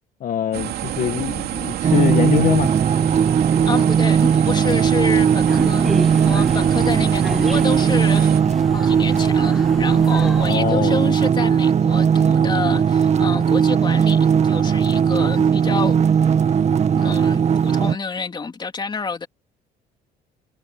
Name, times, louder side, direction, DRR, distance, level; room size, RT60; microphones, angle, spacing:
voice 1, 0.2-2.7 10.5-11.0, left 10 dB, 55° left, 1.8 m, -22 dB
sound 1, 0.5-8.4, right 12 dB, 70° right, 2.7 m, -28 dB
sound 2, 1.8-17.9, right 7 dB, 40° right, 1.7 m, -18 dB
voice 2, 3.6-8.4 8.7-16.0 16.9-19.3, left 4 dB, 25° left, 3.3 m, -29 dB
sound 3, 5.4-10.5, equal, ahead, 1.5 m, -31 dB
cardioid pair, 110°, 17 cm